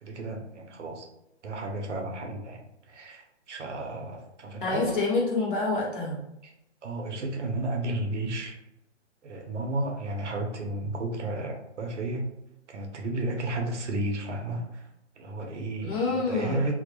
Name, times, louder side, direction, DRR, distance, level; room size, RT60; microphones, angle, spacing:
voice 1, 0.0-1.1 1.4-5.0 6.4-6.5 6.8-8.6 9.2-12.3 12.7-14.9 15.2-16.0 16.3-16.7, right 2 dB, 80° right, 2 dB, 0.7 m, -33 dB
voice 2, 4.6-6.2 15.8-16.7, left 3 dB, 45° left, -3 dB, 0.9 m, -27 dB
2.3 x 2.0 x 2.9 m, 0.86 s
hypercardioid pair, 155°, 35 cm